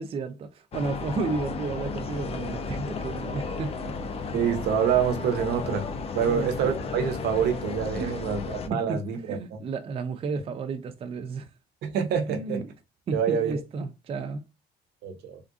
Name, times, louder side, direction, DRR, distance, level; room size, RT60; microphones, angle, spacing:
voice 1, 0.0-4.0 6.2-6.5 7.9-8.2 8.7-11.5 12.3-12.7 13.1-14.5, right 4 dB, 35° right, 0.4 m, -32 dB
sound 1, 0.7-8.7, left 4 dB, 35° left, 0.5 m, -34 dB
voice 2, 4.3-5.9 6.1-9.6 11.8-12.6 13.1-13.6 15.0-15.4, right 7 dB, 75° right, 0.8 m, -26 dB
3.5 x 2.5 x 2.4 m
cardioid pair, 110°, 17 cm